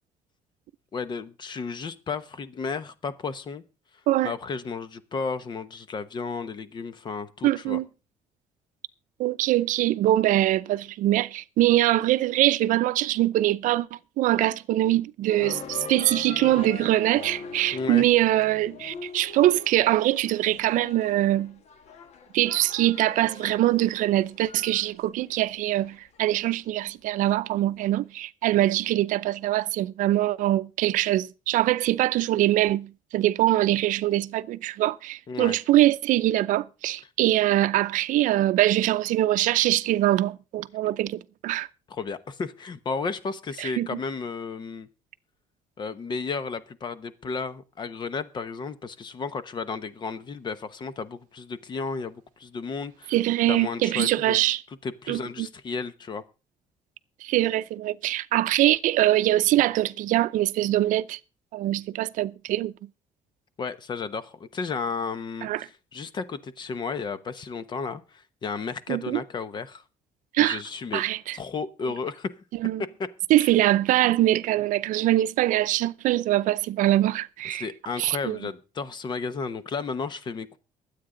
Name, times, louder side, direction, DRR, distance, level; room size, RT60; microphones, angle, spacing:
voice 1, 0.9-3.6 4.2-7.8 17.7-18.0 35.3-35.6 41.9-44.9 45.8-53.1 53.5-54.4 54.8-56.2 63.6-65.5 65.9-69.8 70.4-71.0 71.3-72.3 73.4-73.5 77.5-80.6, left 5 dB, 35° left, 1.0 m, -33 dB
voice 2, 7.4-7.9 9.2-21.6 22.3-41.7 43.6-44.0 53.1-54.6 55.1-55.5 57.2-61.2 61.5-62.7 65.4-65.7 68.9-69.2 70.3-70.6 70.9-71.4 72.6-72.8 73.3-77.7 78.0-78.4, right 14 dB, 70° right, 0.6 m, -23 dB
sound 1, 15.3-26.5, left 5 dB, 55° left, 1.6 m, -41 dB
22.5 x 8.5 x 3.8 m
cardioid pair, 150°, 14 cm